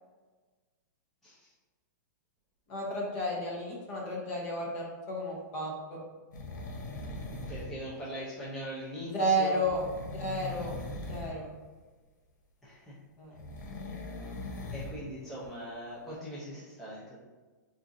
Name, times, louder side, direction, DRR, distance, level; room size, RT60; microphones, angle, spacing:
voice 1, 2.7-6.0 9.1-9.8 10.1-10.8 11.1-11.5 13.2-13.4, right 1 dB, 30° left, -2 dB, 0.8 m, -32 dB
sound 1, 6.3-7.8 9.6-11.4 13.3-15.0 15.4-15.5, left 2 dB, 80° left, 0.7 m, -40 dB
voice 2, 7.3-9.7 12.6-12.9 14.7-17.2, equal, 5° left, -9 dB, 0.5 m, -41 dB
3.9 x 2.5 x 2.4 m, 1.3 s
hypercardioid pair, 165°, 10 cm